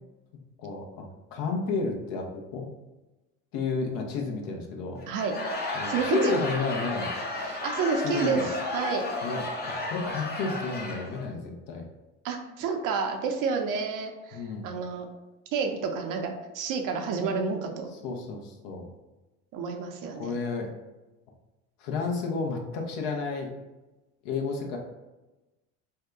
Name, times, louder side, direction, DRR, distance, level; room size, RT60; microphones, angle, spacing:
voice 1, 0.6-2.7 3.5-5.0 5.7-7.1 8.0-8.5 9.2-11.8 14.3-14.7 18.0-18.9 20.2-20.7 21.8-23.5 24.2-24.8, left 4 dB, 65° left, 1 dB, 0.8 m, -31 dB
Laughter / Crowd, 5.0-11.2, left 2 dB, 25° left, 0.7 m, -33 dB
voice 2, 5.1-5.4 5.9-6.3 7.4-9.1 12.2-15.1 15.5-17.9 19.5-20.3, right 5 dB, 55° right, 4 dB, 0.6 m, -30 dB
2.7 x 2.2 x 3.5 m, 1.1 s
hypercardioid pair, 75°, 38 cm